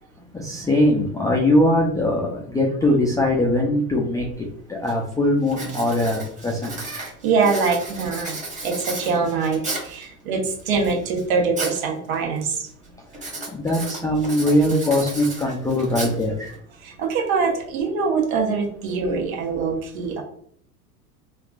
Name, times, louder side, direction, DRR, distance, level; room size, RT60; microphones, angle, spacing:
voice 1, 0.3-6.7 13.5-16.5, left 1 dB, 10° left, -3 dB, 0.4 m, -21 dB
Writing, 4.3-4.4 4.9-5.1 5.5-10.0 10.6-11.8 12.1-12.5 13.1-16.5, right 2 dB, 15° right, 1.4 m, -33 dB
voice 2, 6.8-8.4 8.6-12.7 16.8-20.2, right 4 dB, 65° right, 0 dB, 1.3 m, -24 dB
3.4 x 2.4 x 2.4 m, 0.63 s
hypercardioid pair, 85°, 45 cm